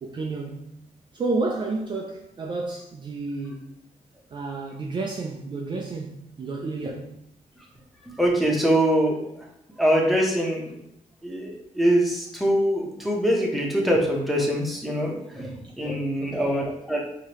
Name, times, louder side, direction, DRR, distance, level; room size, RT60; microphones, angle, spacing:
voice 1, 0.0-0.7 1.1-3.7 4.3-7.1 15.6-16.7, right 3 dB, 35° right, 0.4 m, -31 dB
voice 2, 8.2-9.3 9.8-10.6 11.2-15.5 15.8-17.0, equal, ahead, 0.9 m, -23 dB
4.8 x 2.8 x 3.0 m
cardioid pair, 115°, 14 cm